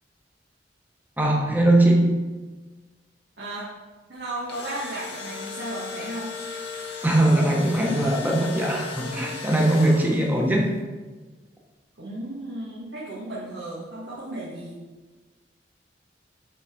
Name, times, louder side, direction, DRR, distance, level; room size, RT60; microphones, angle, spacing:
voice 1, 1.2-2.2 7.0-10.7, right 1 dB, 10° right, -1 dB, 1.2 m, -20 dB
voice 2, 3.4-3.7 4.1-6.3 12.0-14.8, right 1 dB, 80° right, -7 dB, 1.8 m, -34 dB
Engine / Drill, 4.2-10.5, left 5 dB, 75° left, 1.8 m, -37 dB
8.1 x 4.1 x 6.0 m, 1.3 s
head